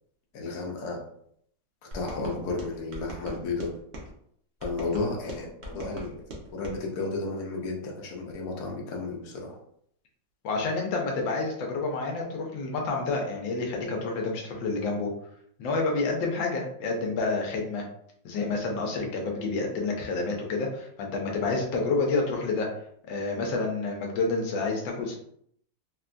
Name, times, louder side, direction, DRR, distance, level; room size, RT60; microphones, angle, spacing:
voice 1, 0.3-1.0 1.8-3.7 4.6-6.2 6.5-9.6, left 3 dB, 65° left, -1 dB, 1.1 m, -33 dB
sound 1, 1.9-4.1 4.6-6.8, right 1 dB, 60° right, 0.7 m, -41 dB
voice 2, 10.4-15.1 15.6-17.8 18.2-22.7 23.1-25.1, left 3 dB, 85° left, 1 dB, 1.4 m, -29 dB
3.7 x 2.2 x 2.5 m, 0.68 s
omnidirectional pair, 2.0 m